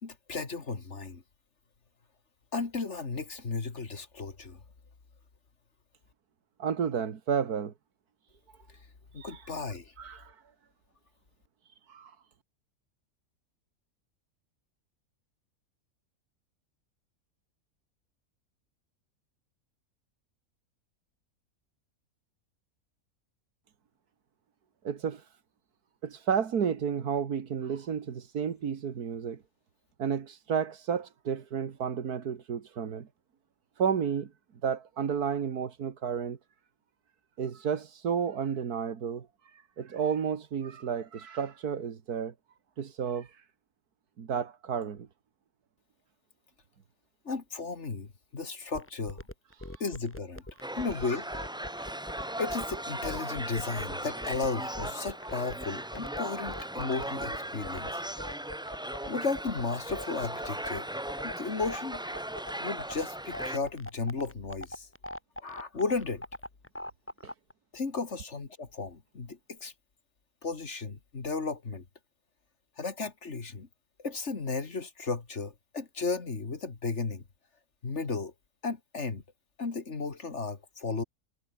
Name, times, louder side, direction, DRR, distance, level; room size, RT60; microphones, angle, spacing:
voice 1, 0.0-1.2 2.5-4.6 9.1-9.9 47.2-49.2 49.8-50.5 50.8-51.3 52.4-58.0 59.1-60.9 61.2-62.0 62.6-64.9 65.4-66.2 67.7-69.7 70.4-71.8 72.8-73.7 74.0-77.2 77.8-78.3 78.6-79.2 79.6-81.0, left 4 dB, 50° left, 2.5 m, -34 dB
voice 2, 6.6-7.7 9.2-9.3 10.0-10.3 11.9-12.1 24.8-25.2 26.0-29.4 30.0-33.1 33.8-34.3 34.6-36.4 37.4-39.3 39.8-42.3 42.8-43.3 44.2-45.1, right 7 dB, 85° right, 2.1 m, -31 dB
sound 1, 48.7-67.5, left 1 dB, 10° left, 2.4 m, -41 dB
sound 2, 50.6-63.6, right 1 dB, 5° right, 0.3 m, -37 dB
omnidirectional pair, 1.6 m